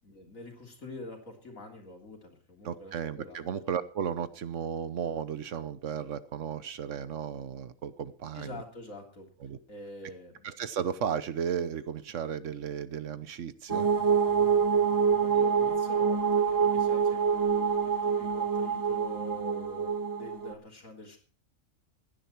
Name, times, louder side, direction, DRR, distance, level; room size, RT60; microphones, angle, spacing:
voice 1, 0.0-3.4 8.3-9.3 9.7-10.5 15.2-19.9 20.2-21.2, left 1 dB, 80° left, 1 dB, 3.6 m, -46 dB
voice 2, 2.6-8.6 9.4-9.6 10.4-13.9, right 8 dB, 70° right, 14 dB, 1.2 m, -34 dB
sound 1, 13.7-20.5, right 6 dB, 20° right, 0.6 m, -26 dB
16.0 x 10.5 x 4.4 m, 0.39 s
omnidirectional pair, 1.4 m